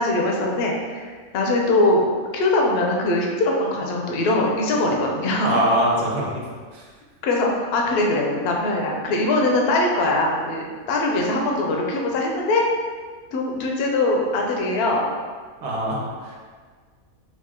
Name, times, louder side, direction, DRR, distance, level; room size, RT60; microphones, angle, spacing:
voice 1, 0.0-2.1 2.3-5.5 7.2-12.6 13.3-15.1, left 2 dB, 60° left, 0 dB, 0.6 m, -22 dB
voice 2, 5.4-6.4 6.7-6.8 15.6-16.1, right 1 dB, 85° right, -4 dB, 1.3 m, -22 dB
3.5 x 2.4 x 3.6 m, 1.6 s
omnidirectional pair, 1.6 m